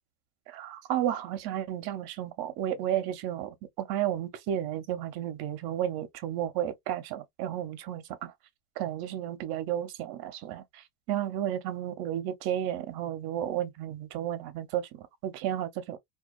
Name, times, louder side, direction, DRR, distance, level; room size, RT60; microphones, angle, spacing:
voice 1, 0.5-8.3 8.8-16.0, right 11 dB, 50° right, 0.7 m, -33 dB
2.3 x 2.3 x 2.3 m
supercardioid pair, 125°, 49 cm